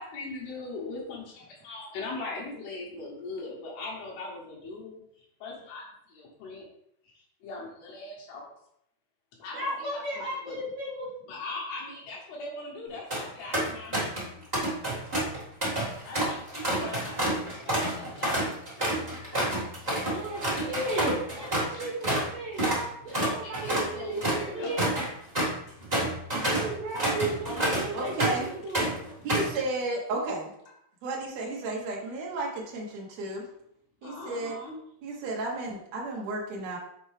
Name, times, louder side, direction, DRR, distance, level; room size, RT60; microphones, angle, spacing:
voice 1, 0.0-6.7 7.0-8.5 9.4-10.6 11.2-14.3 16.0-18.6 20.5-20.8 21.7-21.8 23.4-25.0 32.0-32.2 34.0-34.8, left 3 dB, 80° left, -4 dB, 3.2 m, -40 dB
voice 2, 9.5-11.1 18.3-18.5 19.1-19.2 20.1-24.9 26.4-29.1, right 2 dB, 60° right, -5 dB, 1.7 m, -35 dB
sound 1, 12.9-13.2 13.5-14.3 14.5-22.3 22.6-22.8 23.1-28.5 28.7-29.6, right 1 dB, 40° right, 0.6 m, -28 dB
voice 3, 20.1-20.5 26.3-26.5 27.9-28.5 29.2-30.5 31.0-33.4 34.0-34.6 35.0-36.8, right 2 dB, 75° right, -3 dB, 1.5 m, -33 dB
6.6 x 4.5 x 3.2 m, 0.73 s
omnidirectional pair, 4.4 m